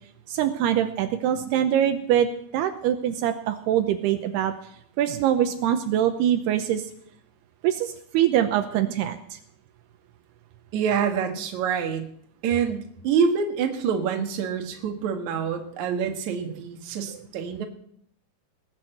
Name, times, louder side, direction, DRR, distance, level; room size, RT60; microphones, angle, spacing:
voice 1, 0.3-2.3 2.5-4.5 5.0-6.9 7.6-9.4, right 10 dB, 80° right, 7 dB, 2.8 m, -23 dB
voice 2, 10.7-12.1 12.4-17.7, right 7 dB, 55° right, 4 dB, 2.5 m, -26 dB
19.5 x 8.3 x 7.9 m, 0.67 s
omnidirectional pair, 4.8 m